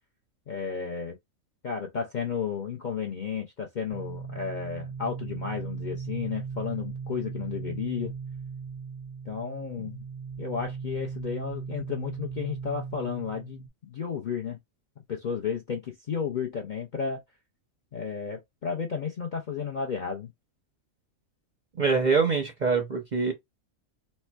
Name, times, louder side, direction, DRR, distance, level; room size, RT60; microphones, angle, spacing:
voice 1, 0.5-1.2 1.6-8.1 9.3-10.0 10.4-14.6 15.1-17.2 17.9-20.3, left 6 dB, 55° left, 0.5 m, -33 dB
sound 1, 3.9-13.7, right 6 dB, 35° left, 1.1 m, -38 dB
voice 2, 21.8-23.3, right 4 dB, 45° right, 0.6 m, -24 dB
4.2 x 2.1 x 2.3 m
omnidirectional pair, 1.4 m